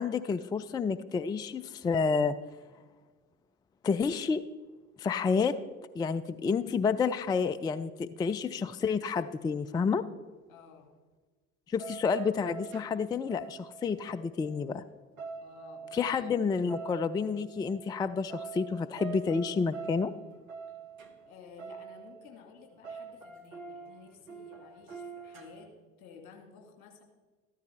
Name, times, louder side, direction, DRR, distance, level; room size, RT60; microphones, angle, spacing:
voice 1, 0.0-2.3 3.8-4.4 5.0-5.5 5.9-10.0 11.7-14.8 15.9-20.1, left 5 dB, 10° left, 13 dB, 0.3 m, -29 dB
voice 2, 10.5-10.9 15.4-16.6 21.2-25.7 26.0-27.0, left 6 dB, 70° left, 2 dB, 2.2 m, -53 dB
sound 1, 11.8-14.7 15.0-22.4 22.6-25.7, right 6 dB, 80° right, 1.2 m, -45 dB
13.5 x 12.5 x 3.3 m, 1.3 s
figure-of-eight pair, 60°, 41 cm